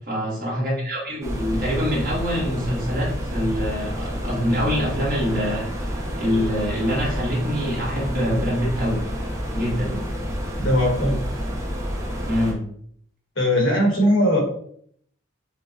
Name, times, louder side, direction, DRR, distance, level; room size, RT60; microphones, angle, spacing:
voice 1, 0.1-5.9 6.2-9.0 9.5-10.1 12.2-12.6, equal, 45° right, -5 dB, 1.3 m, -25 dB
sound 1, 1.2-12.5, equal, 15° right, 0.4 m, -29 dB
voice 2, 10.6-11.2 13.4-14.4, equal, 75° left, -1 dB, 1.1 m, -19 dB
4.8 x 2.1 x 2.4 m, 0.63 s
head